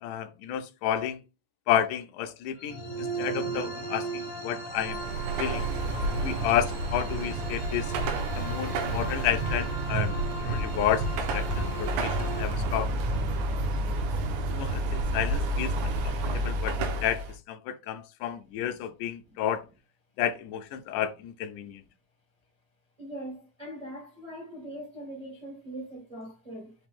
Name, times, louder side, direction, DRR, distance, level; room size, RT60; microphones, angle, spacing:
voice 1, 0.0-1.2 1.7-5.0 5.4-5.7 6.2-7.9 8.4-10.1 10.4-11.1 11.3-12.9 14.5-19.6 20.2-21.8, left 10 dB, 80° left, 2.0 m, -31 dB
sound 1, 2.6-12.4, right 2 dB, 55° left, 0.8 m, -37 dB
Car passing by / Traffic noise roadway noise / Engine, 4.7-17.4, right 2 dB, 75° right, 2.0 m, -30 dB
voice 2, 23.0-26.7, right 1 dB, 55° right, 0.4 m, -41 dB
5.8 x 2.6 x 3.5 m
omnidirectional pair, 3.7 m